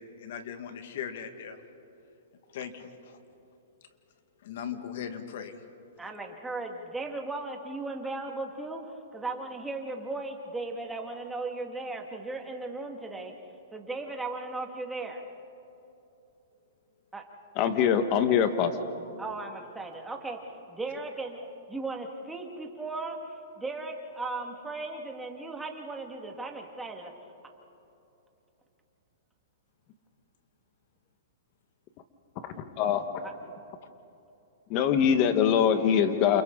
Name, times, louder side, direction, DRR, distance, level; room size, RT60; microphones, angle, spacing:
voice 1, 0.0-1.6 2.5-3.2 4.4-5.5, left 8 dB, 60° left, 7 dB, 2.2 m, -39 dB
voice 2, 6.0-8.8 9.1-13.3 13.7-15.2 17.1-17.3 19.2-20.4 20.7-23.2 23.6-27.1 33.2-33.3, right 3 dB, 10° right, 2 dB, 2.3 m, -36 dB
voice 3, 17.6-18.8 32.4-33.0 34.7-36.4, left 8 dB, 40° left, 8 dB, 1.8 m, -23 dB
29.5 x 28.5 x 4.1 m, 2.9 s
hypercardioid pair, 140°, 0 cm